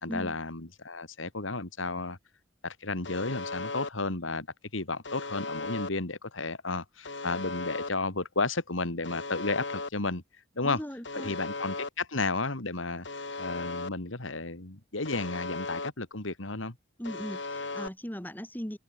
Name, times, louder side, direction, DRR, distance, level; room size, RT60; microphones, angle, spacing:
voice 1, 0.0-2.2 2.6-4.5 4.7-10.2 10.6-10.8 11.1-13.1 13.4-16.8, left 3 dB, 90° left, 2.6 m, -32 dB
Alarm, 3.0-3.9 5.0-5.9 7.0-7.9 9.0-9.9 11.0-11.9 13.0-13.9 15.0-15.9 17.0-17.9, left 3 dB, 65° left, 5.6 m, -36 dB
voice 2, 10.6-11.4 17.0-18.8, equal, 10° left, 4.2 m, -38 dB
head